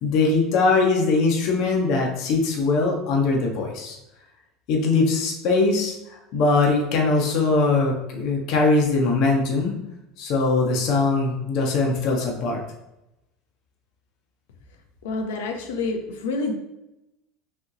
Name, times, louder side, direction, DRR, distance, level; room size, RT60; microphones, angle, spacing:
voice 1, 0.0-4.0 4.7-5.9 6.3-9.7 10.2-12.6, left 3 dB, 60° left, 0 dB, 1.2 m, -21 dB
voice 2, 15.0-16.5, left 3 dB, 85° left, 4 dB, 0.8 m, -28 dB
5.4 x 3.2 x 2.8 m, 0.91 s
supercardioid pair, 110°, 0 cm